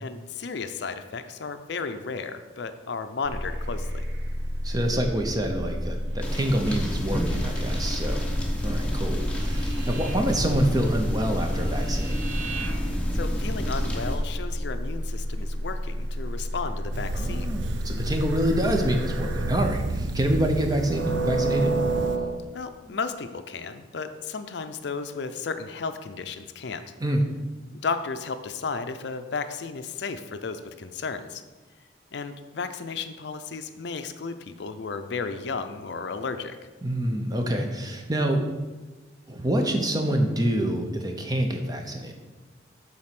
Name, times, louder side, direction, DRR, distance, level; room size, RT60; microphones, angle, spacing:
voice 1, 0.0-4.0 13.1-17.5 22.5-26.9 27.7-31.4 32.1-36.6, left 4 dB, 65° left, 9 dB, 0.5 m, -34 dB
sound 1, 3.2-19.7 20.7-22.4, right 1 dB, 90° right, 0.9 m, -30 dB
voice 2, 4.6-8.2 8.6-12.2 17.1-21.8 22.9-23.0 27.0-27.2 36.8-38.5 39.3-42.1, right 1 dB, 20° right, 4 dB, 0.7 m, -26 dB
sound 2, 6.2-14.2, equal, 5° left, 0.9 m, -30 dB
sound 3, 16.9-22.2, right 3 dB, 70° right, 0.5 m, -33 dB
7.6 x 4.1 x 5.9 m, 1.2 s
head